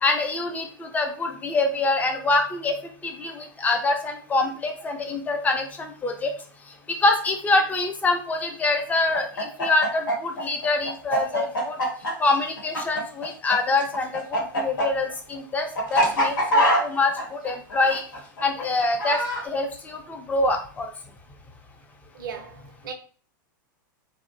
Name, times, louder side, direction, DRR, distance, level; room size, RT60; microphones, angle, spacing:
voice 1, 0.0-2.7 3.0-6.3 7.0-11.8 12.2-18.0 18.4-19.2 19.4-20.9, left 3 dB, 15° left, 0.5 m, -25 dB
Chicken rooster, 9.1-13.6 13.8-19.4, equal, 80° left, 1.0 m, -24 dB
voice 2, 22.1-22.9, right 7 dB, 75° right, 0.5 m, -37 dB
2.6 x 2.0 x 2.5 m
hypercardioid pair, 115°, 11 cm